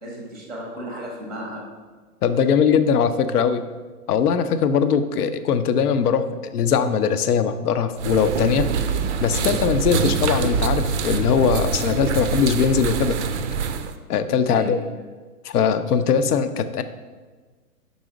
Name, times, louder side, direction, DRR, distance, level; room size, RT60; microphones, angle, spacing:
voice 1, 0.0-1.6 5.1-5.3 14.5-14.7, equal, ahead, -1 dB, 0.7 m, -35 dB
voice 2, 2.2-3.6 4.1-8.7 9.2-13.2 14.1-14.8 15.4-16.8, left 7 dB, 75° left, 11 dB, 0.6 m, -20 dB
sound 1, 8.0-13.9, right 6 dB, 50° right, 0.5 m, -24 dB
5.5 x 4.0 x 4.9 m, 1.4 s
hypercardioid pair, 130°, 46 cm